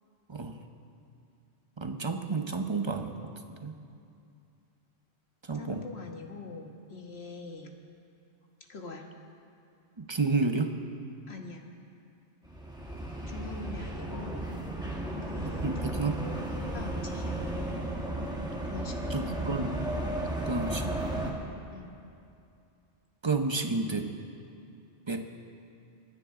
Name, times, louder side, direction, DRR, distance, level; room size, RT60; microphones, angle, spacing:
voice 1, 0.3-0.6 1.8-3.3 3.6-3.7 5.4-5.9 10.0-10.8 15.4-16.3 19.1-19.8 20.4-21.0 23.2-24.2 25.1-25.3, right 3 dB, 25° right, 5 dB, 0.9 m, -31 dB
voice 2, 5.5-7.7 8.7-9.1 11.3-11.6 13.3-14.5 15.2-15.8 16.7-17.4 18.6-19.2 19.7-19.9 21.7-21.9, left 4 dB, 70° left, 2 dB, 1.7 m, -43 dB
sound 1, 12.4-21.3, right 1 dB, 5° right, 1.6 m, -34 dB
29.0 x 10.0 x 3.8 m, 2.6 s
omnidirectional pair, 1.1 m